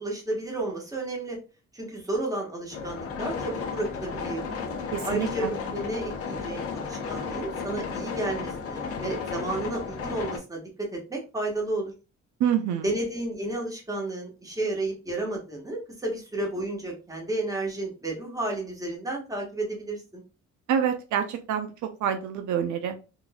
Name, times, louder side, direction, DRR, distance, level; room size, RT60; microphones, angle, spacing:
voice 1, 0.0-1.4 1.7-4.5 5.0-10.6 10.9-11.9 12.8-20.2, right 2 dB, 10° right, 1.2 m, -32 dB
sound 1, 2.7-10.4, left 5 dB, 50° left, 0.9 m, -33 dB
voice 2, 4.9-5.5 12.4-12.8 20.7-23.0, right 8 dB, 75° right, 0.5 m, -27 dB
3.7 x 2.4 x 2.2 m
cardioid pair, 90°, 30 cm